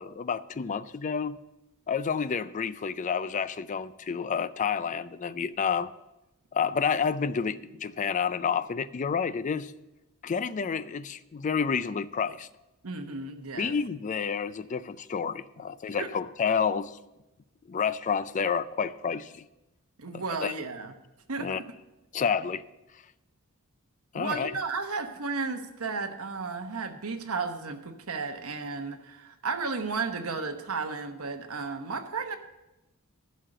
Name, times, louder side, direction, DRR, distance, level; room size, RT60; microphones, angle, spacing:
voice 1, 0.0-1.4 1.9-5.9 6.5-9.7 10.2-12.5 13.6-17.0 17.7-19.4 20.1-20.5 21.4-21.6 22.1-22.6 24.1-24.5, left 6 dB, 35° left, 15 dB, 0.4 m, -29 dB
voice 2, 12.8-13.7 15.9-16.1 20.0-20.9 21.3-21.5 24.1-32.4, right 4 dB, 70° right, 6 dB, 1.0 m, -33 dB
11.0 x 6.4 x 6.6 m, 0.97 s
head